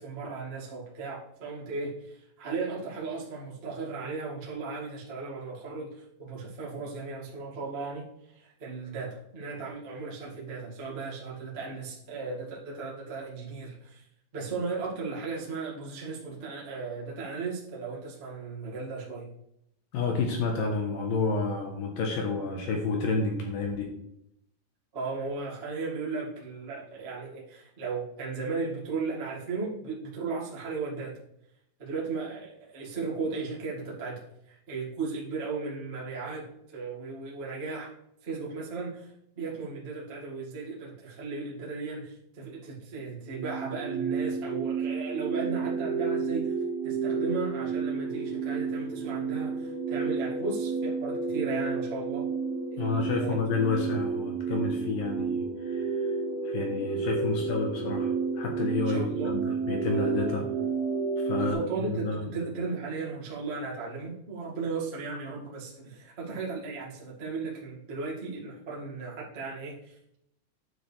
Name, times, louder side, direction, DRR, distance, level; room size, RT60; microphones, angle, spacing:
voice 1, 0.0-14.0 14.3-19.3 24.9-31.2 31.8-37.9 38.2-46.5 46.8-52.3 52.7-53.4 58.8-59.3 60.2-60.5 61.3-70.1, right 4 dB, 45° right, -5 dB, 0.8 m, -36 dB
voice 2, 19.9-23.9 52.8-56.2 56.4-60.4 61.2-61.6 61.9-62.2, left 4 dB, 70° left, 1 dB, 2.3 m, -30 dB
sound 1, 43.3-61.5, right 5 dB, 60° right, 1.9 m, -31 dB
9.7 x 7.1 x 3.4 m, 0.77 s
omnidirectional pair, 5.2 m